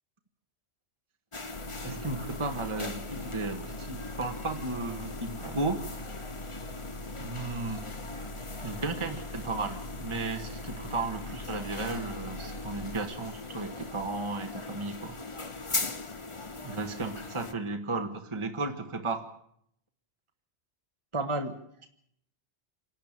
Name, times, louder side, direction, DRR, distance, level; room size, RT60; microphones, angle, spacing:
sound 1, 1.3-17.5, left 3 dB, 30° left, 1.1 m, -40 dB
sound 2, 1.5-13.0, left 1 dB, 65° left, 2.1 m, -43 dB
voice 1, 1.8-5.8 7.2-7.9 8.6-15.2 15.4-15.5 16.6-19.3 21.1-21.9, right 3 dB, 25° right, 7 dB, 1.4 m, -34 dB
27.5 x 11.5 x 8.9 m, 0.72 s
omnidirectional pair, 1.2 m